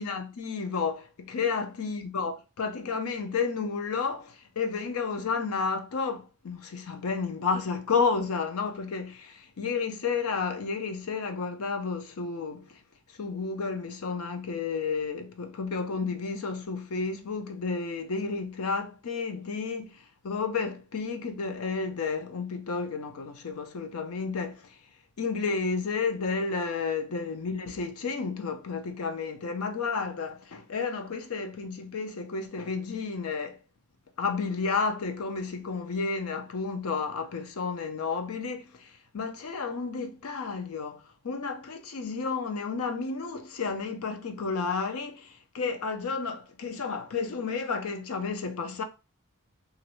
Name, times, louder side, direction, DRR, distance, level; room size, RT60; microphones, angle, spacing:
voice 1, 0.0-12.8 13.1-24.7 25.2-33.6 34.2-48.8, left 4 dB, 70° left, 0.6 m, -31 dB
3.0 x 2.6 x 3.0 m
head